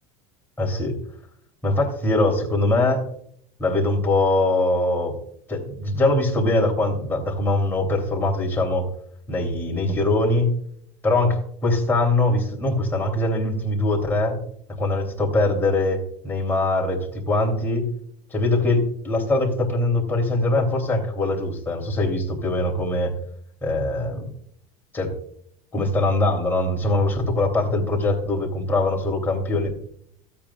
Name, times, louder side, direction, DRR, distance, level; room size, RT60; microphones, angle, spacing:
voice 1, 0.6-0.9 1.6-3.0 3.6-5.1 5.5-8.8 9.3-10.5 11.0-14.4 14.8-17.9 18.3-23.1 23.6-24.3 24.9-25.1 25.7-29.7, left 2 dB, 10° left, 0 dB, 2.9 m, -22 dB
16.0 x 8.7 x 2.3 m, 0.64 s
supercardioid pair, 140°, 16 cm